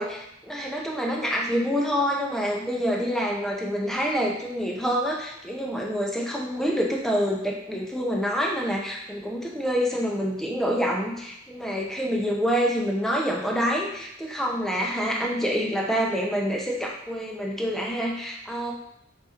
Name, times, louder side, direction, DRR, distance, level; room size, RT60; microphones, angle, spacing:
voice 1, 0.0-18.7, equal, ahead, -2 dB, 0.6 m, -27 dB
4.2 x 2.9 x 3.6 m, 0.82 s
head